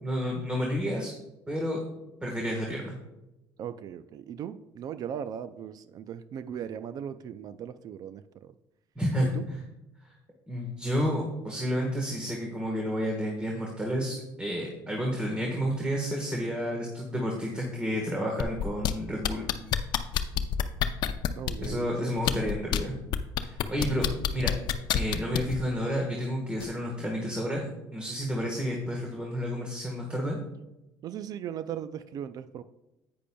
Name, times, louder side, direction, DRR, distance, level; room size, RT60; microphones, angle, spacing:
voice 1, 0.0-1.1 1.5-1.8 2.2-2.9 8.9-9.6 10.5-19.5 21.6-22.9 23.4-24.5 24.9-30.4, equal, 10° right, -1 dB, 1.4 m, -30 dB
voice 2, 3.6-8.5 9.2-9.5 21.4-22.4 31.0-32.6, right 9 dB, 50° right, 13 dB, 0.4 m, -38 dB
sound 1, 18.4-18.9 19.2-21.7 22.2-22.8 23.1-25.6 26.6-26.7, left 11 dB, 60° left, 0.5 m, -27 dB
10.0 x 8.6 x 2.3 m, 0.97 s
cardioid pair, 125°, 8 cm